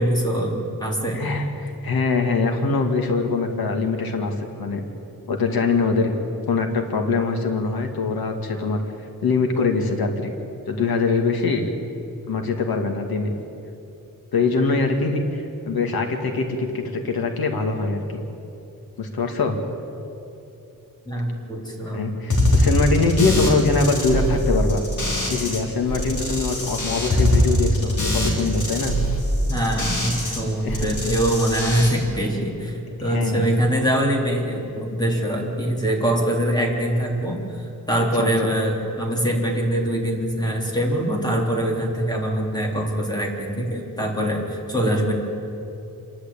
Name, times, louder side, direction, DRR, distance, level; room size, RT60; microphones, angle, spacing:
voice 1, 0.0-1.2 21.1-22.1 29.5-45.1, right 1 dB, 10° left, -1 dB, 3.3 m, -23 dB
voice 2, 1.1-4.3 4.6-4.8 5.3-6.1 6.5-8.8 9.2-10.3 10.7-11.7 12.3-13.3 14.3-18.2 19.0-19.6 21.9-24.8 25.3-28.9 30.6-30.9 33.0-33.5 38.1-38.3, left 4 dB, 85° left, 3 dB, 2.3 m, -23 dB
sound 1, 22.3-25.6 25.9-30.4 30.7-31.9, left 1 dB, 55° left, 3.8 m, -22 dB
26.5 x 11.5 x 8.6 m, 2.9 s
wide cardioid pair, 155°, 35 cm